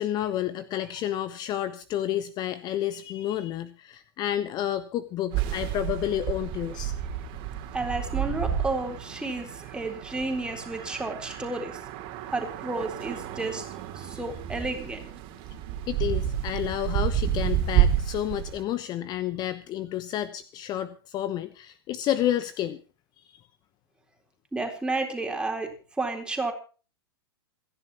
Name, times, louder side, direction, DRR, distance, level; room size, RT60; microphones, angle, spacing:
voice 1, 0.0-6.9 15.9-22.8 23.2-23.4, left 11 dB, 30° left, 15 dB, 1.0 m, -30 dB
sound 1, 5.3-18.6, right 10 dB, 40° right, 2.8 m, -30 dB
voice 2, 7.7-11.8 12.3-15.0 24.5-26.5, right 2 dB, 5° right, 3 dB, 4.0 m, -32 dB
28.0 x 11.0 x 3.0 m, 0.36 s
hypercardioid pair, 105°, 13 cm